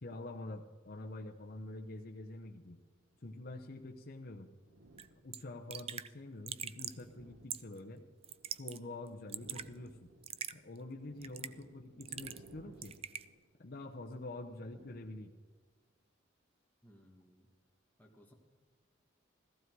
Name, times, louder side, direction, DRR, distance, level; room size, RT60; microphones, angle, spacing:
voice 1, 0.0-2.8 3.2-4.5 5.2-8.0 8.5-10.0 10.5-12.9 13.6-15.3, left 2 dB, 50° left, 1 dB, 0.8 m, -46 dB
sound 1, 2.5-4.0 4.6-5.7 6.4-8.8 9.1-15.6, right 1 dB, 85° right, 1.1 m, -61 dB
Raindrop / Drip, 5.0-5.1 5.3-5.4 5.7-6.1 6.5-7.0 7.5-7.8 8.2-8.8 9.1-9.7 10.2-10.5 11.2-11.6 12.0-12.5 12.8-13.2, right 9 dB, 30° right, 0.4 m, -42 dB
voice 2, 16.8-17.5 18.0-18.3, equal, 10° left, 0 dB, 1.8 m, -62 dB
15.5 x 15.0 x 4.7 m, 1.5 s
head